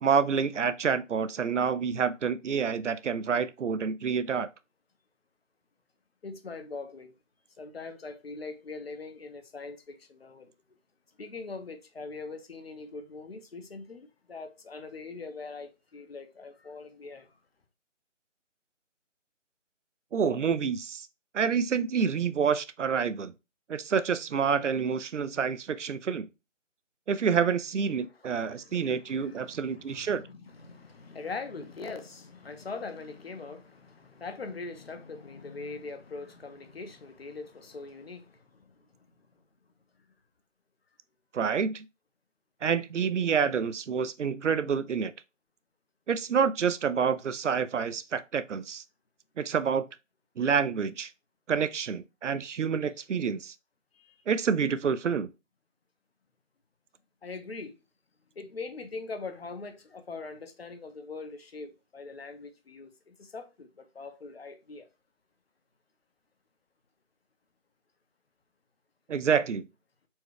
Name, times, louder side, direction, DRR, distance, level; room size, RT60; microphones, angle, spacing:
voice 1, 0.0-4.5 20.1-21.1 21.3-23.3 23.7-26.3 27.1-30.2 41.3-41.9 42.6-45.1 46.1-48.8 49.4-49.8 50.4-51.1 51.5-53.5 54.3-55.3 69.1-69.7, right 6 dB, 70° right, 0.5 m, -28 dB
voice 2, 6.2-7.1 7.6-10.5 11.2-17.4 28.0-38.9 53.9-54.1 57.2-57.8 58.4-64.9, left 4 dB, 50° left, 0.7 m, -42 dB
4.5 x 2.2 x 4.7 m
figure-of-eight pair, 160°, 38 cm